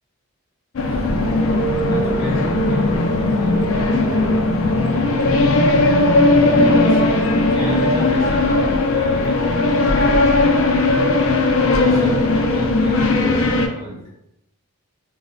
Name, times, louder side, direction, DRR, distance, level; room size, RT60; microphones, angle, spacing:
sound 1, 0.8-13.7, left 2 dB, 60° left, 0.4 m, -17 dB
voice 1, 0.8-4.0 6.3-10.5 11.6-14.0, equal, 30° right, -5 dB, 0.8 m, -30 dB
3.9 x 2.1 x 2.5 m, 0.82 s
head